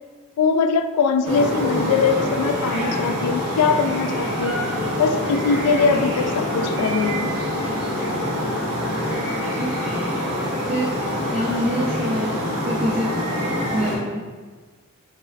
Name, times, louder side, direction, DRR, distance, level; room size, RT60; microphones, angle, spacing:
voice 1, 0.4-4.6 5.0-7.4, left 5 dB, 85° left, 10 dB, 0.3 m, -21 dB
sound 1, 1.2-14.0, left 1 dB, 70° right, 1.1 m, -25 dB
voice 2, 9.3-9.8 10.7-11.0 11.3-13.1 13.7-14.2, equal, 30° right, -2 dB, 0.4 m, -26 dB
4.1 x 3.9 x 2.4 m, 1.4 s
head